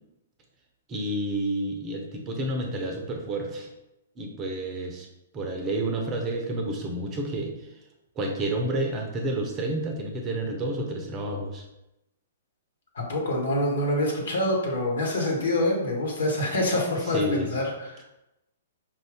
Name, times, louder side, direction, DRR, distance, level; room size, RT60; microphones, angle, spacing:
voice 1, 0.9-3.7 4.2-5.1 5.3-7.5 8.2-11.6 17.1-17.5, right 1 dB, 25° right, 2 dB, 0.7 m, -30 dB
voice 2, 12.9-18.0, left 1 dB, 65° left, -1 dB, 1.5 m, -26 dB
5.4 x 2.6 x 3.5 m, 0.91 s
figure-of-eight pair, 120°, 0 cm